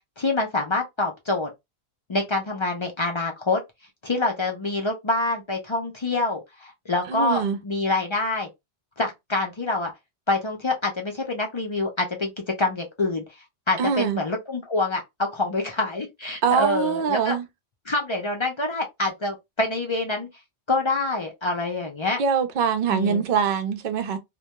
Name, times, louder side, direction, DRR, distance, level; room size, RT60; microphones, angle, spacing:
voice 1, 0.2-1.5 2.1-3.6 4.0-8.5 9.0-9.9 10.3-12.3 12.6-13.2 13.7-17.4 17.9-20.3 20.7-22.2 22.9-23.2, left 2 dB, 40° left, 0.4 m, -26 dB
voice 2, 7.1-7.6 13.8-14.2 16.4-17.5 22.2-24.2, right 6 dB, 55° right, 0.6 m, -23 dB
2.2 x 2.2 x 2.8 m
omnidirectional pair, 1.1 m